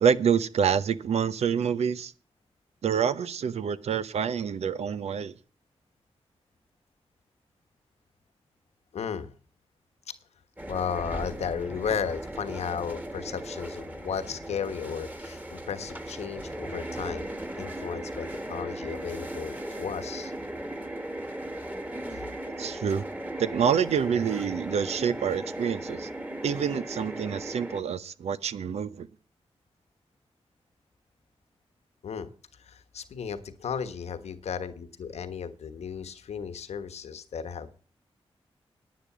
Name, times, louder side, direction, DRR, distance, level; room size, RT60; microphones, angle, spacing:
voice 1, 0.0-2.1 2.8-5.3 22.6-23.0 23.4-26.1 26.4-29.1, right 7 dB, 90° right, 0.7 m, -27 dB
voice 2, 8.9-9.3 10.7-17.3 17.6-20.3 22.1-22.2 32.0-32.3 32.6-37.8, left 7 dB, 85° left, 1.3 m, -34 dB
sound 1, 10.6-27.8, right 1 dB, 15° right, 1.9 m, -37 dB
10.5 x 9.5 x 6.1 m
cardioid pair, 55°, 11 cm